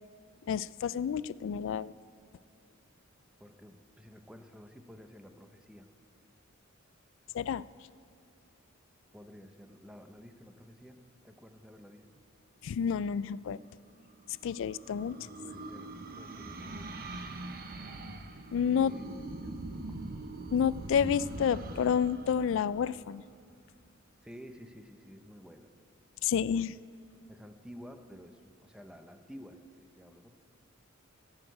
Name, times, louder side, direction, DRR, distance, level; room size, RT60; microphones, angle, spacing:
voice 1, 0.5-1.9 7.3-7.6 12.6-13.6 14.3-15.2 18.5-18.9 20.5-23.2 26.2-26.8, left 7 dB, 65° left, 18 dB, 0.3 m, -29 dB
voice 2, 3.4-5.9 9.1-12.1 15.1-17.0 18.7-19.1 19.4-20.1 24.2-25.7 27.3-30.4, equal, 5° right, 7 dB, 0.7 m, -51 dB
sound 1, 14.0-23.6, right 2 dB, 45° right, 0.9 m, -43 dB
16.5 x 6.6 x 9.1 m, 2.3 s
head